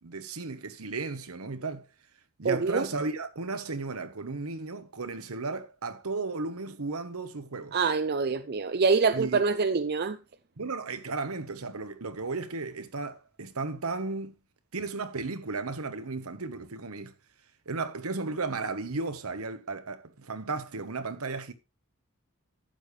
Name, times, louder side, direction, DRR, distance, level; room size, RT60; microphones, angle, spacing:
voice 1, 0.0-1.9 2.4-7.8 9.1-9.4 10.6-14.4 14.7-17.1 17.7-21.5, right 3 dB, 80° right, 1.1 m, -34 dB
voice 2, 2.4-2.9 7.7-10.2, right 4 dB, 45° right, 0.5 m, -25 dB
12.0 x 8.5 x 3.2 m
head